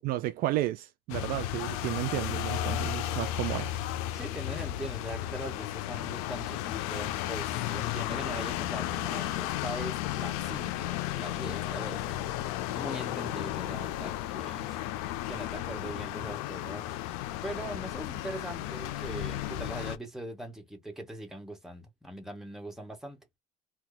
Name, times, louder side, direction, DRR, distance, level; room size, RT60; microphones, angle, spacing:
voice 1, 0.0-3.8, right 15 dB, 55° right, 0.4 m, -32 dB
sound 1, 1.1-20.0, left 13 dB, 80° left, 0.5 m, -34 dB
voice 2, 4.1-12.2 12.7-16.9 17.4-23.2, right 1 dB, ahead, 1.3 m, -41 dB
2.8 x 2.3 x 3.8 m
supercardioid pair, 115°, 18 cm